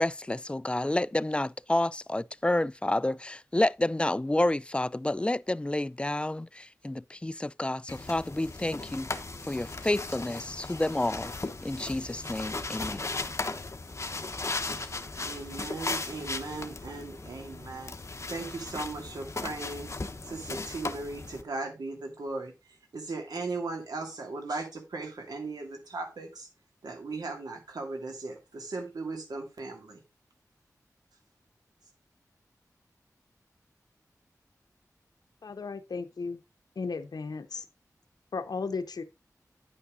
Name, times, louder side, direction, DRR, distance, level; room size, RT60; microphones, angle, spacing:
voice 1, 0.0-9.1 9.4-11.3 11.6-13.1, left 1 dB, 15° left, 0.3 m, -29 dB
sound 1, 7.9-21.4, left 3 dB, 45° left, 1.0 m, -37 dB
voice 2, 15.2-18.0 18.3-19.9 20.3-22.5 22.9-26.5 26.8-30.0, right 3 dB, 90° right, 2.4 m, -37 dB
voice 3, 35.4-36.4 36.8-37.7 38.3-39.0, left 4 dB, 80° left, 0.7 m, -35 dB
9.7 x 5.6 x 3.9 m
cardioid pair, 50°, 7 cm